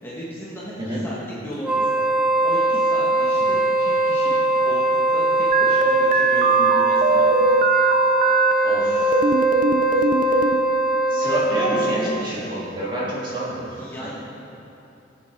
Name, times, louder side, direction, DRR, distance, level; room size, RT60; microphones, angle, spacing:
voice 1, 0.0-1.2 1.4-2.0 2.4-7.3 13.8-14.1, equal, 10° left, -8 dB, 1.5 m, -36 dB
Wind instrument woodwind instrument, 1.6-12.2, right 2 dB, 5° right, 0.6 m, -21 dB
sound 1, 5.5-8.5 9.0-10.6, right 4 dB, 45° right, 0.5 m, -20 dB
voice 2, 8.6-9.2 10.3-10.4 11.1-14.1, right 1 dB, 25° right, -8 dB, 3.2 m, -28 dB
19.5 x 7.1 x 4.4 m, 2.8 s
head